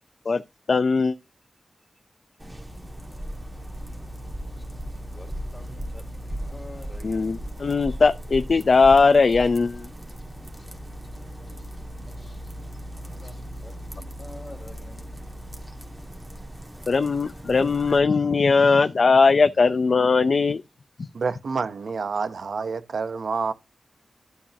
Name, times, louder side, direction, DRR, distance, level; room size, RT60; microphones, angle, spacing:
voice 1, 0.7-1.1 7.0-9.9 12.2-12.3 16.9-20.6, left 4 dB, 60° left, 0.5 m, -19 dB
sound 1, 2.4-18.0, equal, 15° right, 1.9 m, -37 dB
voice 2, 4.5-4.8 5.1-7.5 13.0-15.3, left 1 dB, 25° left, 3.2 m, -47 dB
voice 3, 21.1-23.5, right 5 dB, 90° right, 0.8 m, -28 dB
12.5 x 7.0 x 2.8 m
wide cardioid pair, 110°, 0 cm